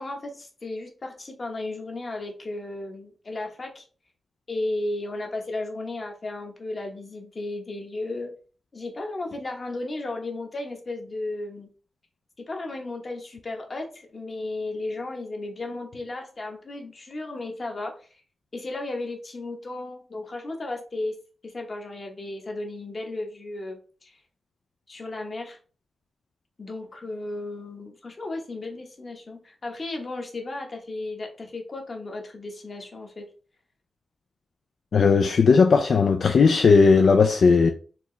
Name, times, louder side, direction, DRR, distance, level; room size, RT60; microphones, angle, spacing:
voice 1, 0.0-3.9 4.5-8.3 8.7-11.7 12.4-18.1 18.5-21.2 21.4-24.2 24.9-25.6 26.6-33.3, left 2 dB, 35° left, 1.0 m, -34 dB
voice 2, 34.9-37.7, left 5 dB, 60° left, 0.3 m, -17 dB
4.3 x 2.9 x 3.2 m
wide cardioid pair, 120°, 0 cm